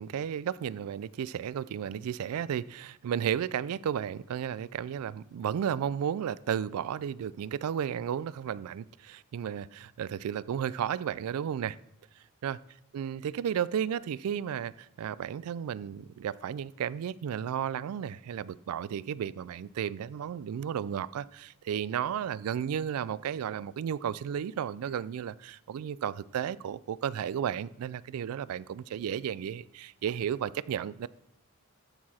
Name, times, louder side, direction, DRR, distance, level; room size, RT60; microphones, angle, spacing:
voice 1, 0.0-11.8 12.4-12.6 12.9-31.1, right 8 dB, 75° right, 20 dB, 0.3 m, -33 dB
13.0 x 4.7 x 4.2 m, 0.84 s
head